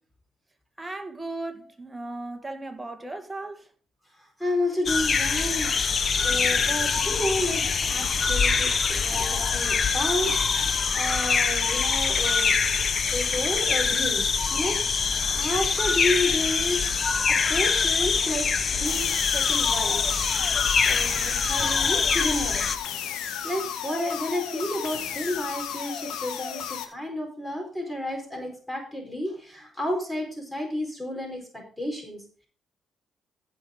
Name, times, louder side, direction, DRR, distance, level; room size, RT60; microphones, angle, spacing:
voice 1, 0.8-3.7, right 2 dB, 15° right, 1.8 m, -36 dB
voice 2, 4.4-5.7 6.1-7.6 7.9-12.5 13.1-14.2 14.5-16.8 17.5-18.5 18.8-20.6 20.8-22.6 23.4-32.5, left 1 dB, 5° left, 4.5 m, -31 dB
sound 1, 4.9-22.8, left 5 dB, 45° left, 1.0 m, -24 dB
sound 2, 18.8-26.8, left 8 dB, 85° left, 1.6 m, -34 dB
15.5 x 5.4 x 5.2 m
cardioid pair, 90°, 0 cm